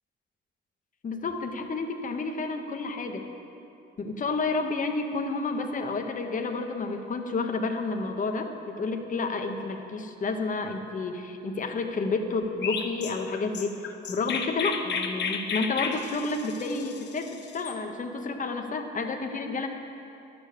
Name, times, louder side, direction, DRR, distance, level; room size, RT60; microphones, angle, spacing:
voice 1, 1.0-3.3 4.0-19.7, left 3 dB, 40° left, 4 dB, 1.1 m, -30 dB
Chirp tweet, 12.6-17.8, left 5 dB, 60° left, 1.0 m, -33 dB
11.5 x 7.0 x 8.6 m, 2.9 s
cardioid pair, 90°, 20 cm